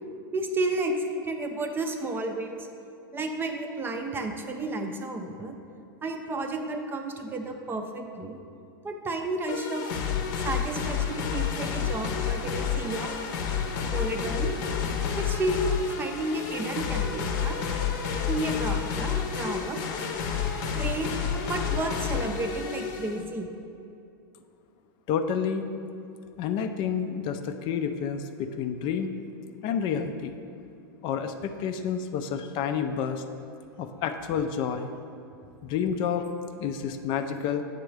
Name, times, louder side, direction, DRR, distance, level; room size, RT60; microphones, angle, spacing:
voice 1, 0.3-2.7 3.1-5.5 6.0-8.4 8.8-10.0 10.4-13.1 13.8-14.5 15.2-17.6 18.3-19.8 20.7-21.1 21.5-23.5, right 2 dB, 15° right, 5 dB, 0.5 m, -31 dB
sound 1, 9.5-23.2, left 7 dB, 55° left, 0.8 m, -30 dB
voice 2, 25.1-25.7 26.4-29.1 29.6-30.3 31.0-33.2 33.8-34.9 35.6-36.3 36.6-37.6, left 7 dB, 40° left, 7 dB, 0.4 m, -29 dB
7.9 x 3.7 x 4.8 m, 2.6 s
hypercardioid pair, 120°, 12 cm